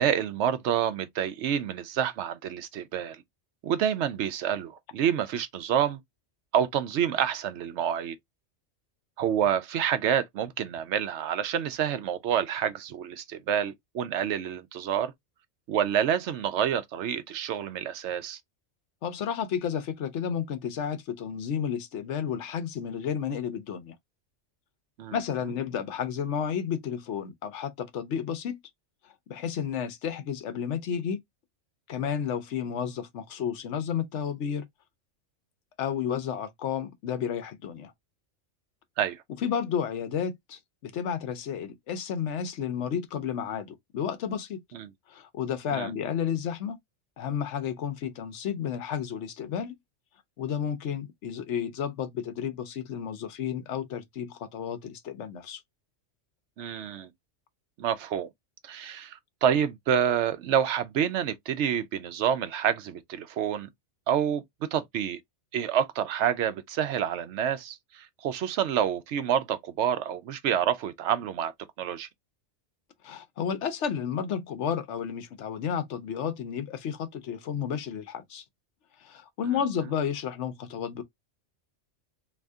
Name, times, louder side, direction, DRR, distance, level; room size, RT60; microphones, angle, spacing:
voice 1, 0.0-3.2 3.6-6.0 6.5-8.2 9.2-15.1 15.7-18.4 25.0-25.2 39.0-39.2 44.7-44.9 45.7-45.9 56.6-57.1 57.8-58.3 58.6-63.7 64.1-64.4 64.7-65.2 65.5-71.5 71.8-72.1, right 9 dB, 75° right, 0.9 m, -28 dB
voice 2, 19.0-23.9 25.1-28.6 29.3-31.2 31.9-34.7 35.8-37.9 39.4-44.6 45.1-46.8 47.2-49.8 50.4-55.6 73.0-78.4 79.0-81.0, left 8 dB, 75° left, 1.0 m, -32 dB
2.7 x 2.6 x 3.4 m
omnidirectional pair, 1.2 m